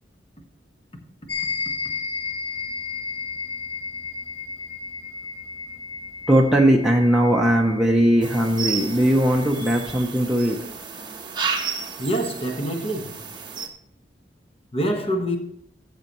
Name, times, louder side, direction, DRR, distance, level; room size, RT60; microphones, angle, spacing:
sound 1, 1.3-10.0, left 5 dB, 65° left, 3.1 m, -34 dB
voice 1, 6.3-10.6, equal, 5° right, 0.7 m, -19 dB
sound 2, 8.2-13.7, right 5 dB, 25° right, 1.1 m, -32 dB
voice 2, 12.0-13.1 14.7-15.4, right 1 dB, 35° left, 1.3 m, -25 dB
14.0 x 6.8 x 3.0 m
head